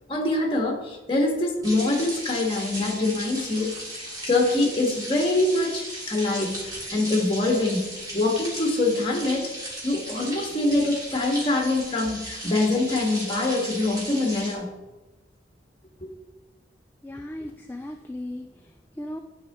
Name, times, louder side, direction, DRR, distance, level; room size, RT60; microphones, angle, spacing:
voice 1, 0.1-3.7 4.3-14.7 16.0-16.1, left 2 dB, 30° left, 1 dB, 1.5 m, -24 dB
sound 1, 1.6-14.5, right 1 dB, 20° right, 2.6 m, -36 dB
voice 2, 17.0-19.2, left 1 dB, 10° left, 4 dB, 0.3 m, -37 dB
11.5 x 4.6 x 3.6 m, 1.1 s
head